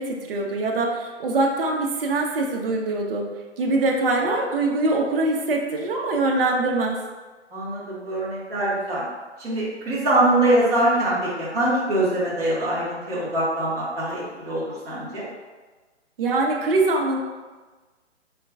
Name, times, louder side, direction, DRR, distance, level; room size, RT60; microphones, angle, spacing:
voice 1, 0.0-3.3 3.6-7.0 16.2-17.2, right 2 dB, 50° right, 0 dB, 0.6 m, -23 dB
voice 2, 7.5-9.0 9.4-15.3, right 1 dB, 10° right, -10 dB, 0.5 m, -23 dB
3.9 x 2.2 x 3.4 m, 1.3 s
figure-of-eight pair, 140°, 36 cm